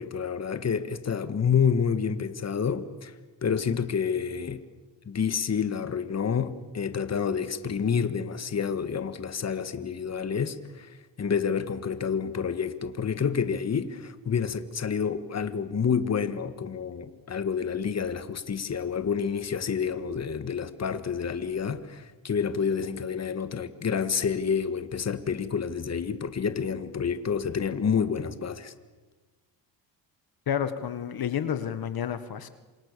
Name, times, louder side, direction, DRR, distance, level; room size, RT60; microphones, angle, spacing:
voice 1, 0.0-3.1 3.4-4.6 5.1-28.7, left 6 dB, 35° left, 10 dB, 1.8 m, -29 dB
voice 2, 30.5-32.5, left 8 dB, 55° left, 10 dB, 1.7 m, -30 dB
27.5 x 26.5 x 6.9 m, 1.3 s
cardioid pair, 95°, 43 cm